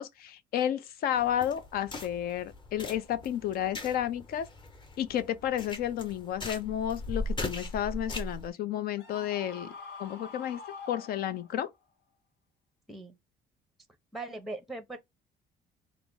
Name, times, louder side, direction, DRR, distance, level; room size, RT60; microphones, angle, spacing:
voice 1, 0.0-4.5 5.0-9.7 10.0-10.6 10.9-11.7, left 10 dB, 65° left, 0.6 m, -31 dB
sound 1, 1.2-8.5, left 2 dB, 30° left, 0.9 m, -39 dB
Screaming, 9.0-11.7, left 4 dB, 80° left, 1.4 m, -45 dB
voice 2, 14.1-15.0, right 2 dB, ahead, 0.6 m, -39 dB
3.3 x 2.1 x 3.8 m
cardioid pair, 110°, 17 cm